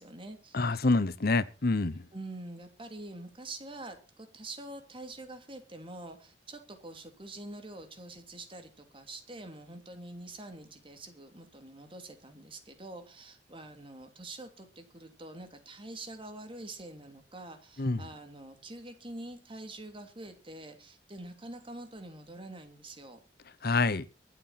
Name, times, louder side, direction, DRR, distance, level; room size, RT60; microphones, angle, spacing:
voice 1, 0.0-0.9 2.1-23.2, right 2 dB, 30° right, 3.0 m, -46 dB
voice 2, 0.5-2.0 17.8-18.0 23.6-24.1, left 3 dB, 60° left, 1.0 m, -27 dB
23.5 x 8.5 x 4.3 m
head